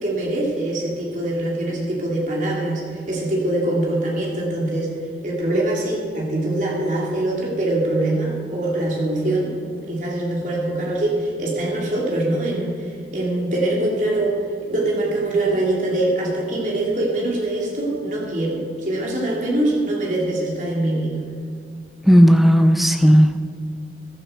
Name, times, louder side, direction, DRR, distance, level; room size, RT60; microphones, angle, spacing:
voice 1, 0.0-4.9 5.2-12.7 13.1-21.2, right 1 dB, 45° right, -3 dB, 3.0 m, -23 dB
voice 2, 22.1-23.5, equal, ahead, 6 dB, 0.6 m, -13 dB
14.5 x 11.5 x 4.5 m, 2.2 s
head